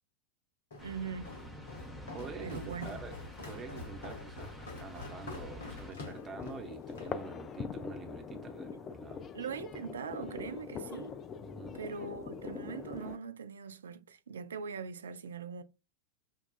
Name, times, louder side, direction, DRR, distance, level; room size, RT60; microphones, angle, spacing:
Walk footsteps, 0.7-7.2, left 3 dB, 60° left, 0.9 m, -47 dB
sound 1, 0.8-5.9, left 1 dB, 5° left, 0.8 m, -47 dB
voice 1, 0.8-1.3 2.4-3.0 9.3-11.2 11.7-15.6, right 6 dB, 65° right, 0.4 m, -41 dB
voice 2, 2.1-3.2 3.5-9.2 11.4-11.8, right 4 dB, 20° right, 0.8 m, -46 dB
sound 2, 5.9-13.2, left 6 dB, 25° left, 0.3 m, -43 dB
5.4 x 2.3 x 2.3 m
figure-of-eight pair, 90°, 0 cm